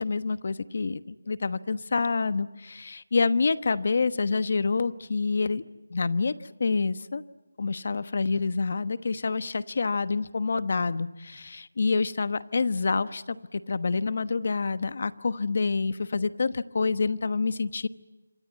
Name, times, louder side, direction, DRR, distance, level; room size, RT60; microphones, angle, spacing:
voice 1, 0.0-5.6 5.9-6.3 6.6-7.2 7.6-17.9, left 4 dB, 55° left, 14 dB, 1.1 m, -27 dB
27.0 x 25.0 x 8.3 m, 1.1 s
figure-of-eight pair, 170°, 0 cm